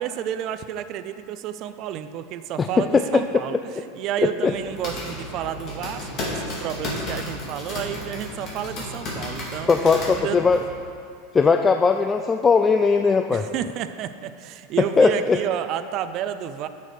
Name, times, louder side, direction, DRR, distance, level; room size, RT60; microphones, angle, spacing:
voice 1, 0.0-9.7 10.1-10.4 13.3-16.7, right 10 dB, 45° right, 12 dB, 0.5 m, -31 dB
sound 1, 4.5-10.7, left 1 dB, 40° left, 2.3 m, -33 dB
voice 2, 9.7-10.6 11.3-13.5 15.0-15.4, left 4 dB, 20° left, 6 dB, 0.3 m, -18 dB
8.9 x 6.6 x 5.0 m, 2.3 s
supercardioid pair, 125°, 0 cm